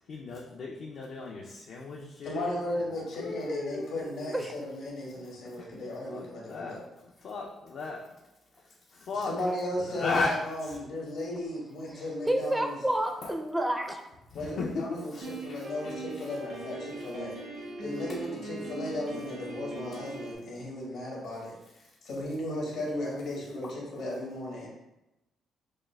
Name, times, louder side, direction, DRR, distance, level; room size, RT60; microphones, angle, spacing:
voice 1, 0.1-2.4 2.7-2.8 3.2-3.9 4.2-4.4 5.5-5.7 6.1-6.8 7.2-8.1 8.6-9.3 9.7-10.8 13.2-13.3 14.3-16.3 23.6-23.7, left 3 dB, 65° left, -2 dB, 0.4 m, -36 dB
voice 2, 2.2-6.8 9.1-12.8 14.3-17.4 17.8-24.7, left 1 dB, 80° left, -3 dB, 1.3 m, -35 dB
voice 3, 11.9-14.0, right 1 dB, 10° right, 4 dB, 0.4 m, -30 dB
Piano, 15.2-20.3, right 2 dB, 80° right, 1.1 m, -40 dB
6.2 x 2.4 x 2.2 m, 0.94 s
cardioid pair, 90°, 0 cm